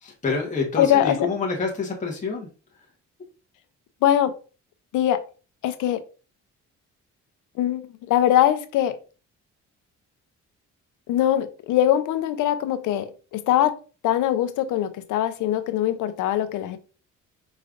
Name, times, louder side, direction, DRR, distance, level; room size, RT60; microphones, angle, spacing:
voice 1, 0.0-2.5 2.7-2.8, left 4 dB, 25° left, 1.2 m, -27 dB
voice 2, 0.8-1.2 4.0-4.3 4.9-5.2 5.6-6.0 7.6-7.8 8.1-9.0 11.1-13.7 14.0-16.8, left 11 dB, 85° left, 0.6 m, -22 dB
4.9 x 3.2 x 2.5 m
cardioid pair, 90°, 30 cm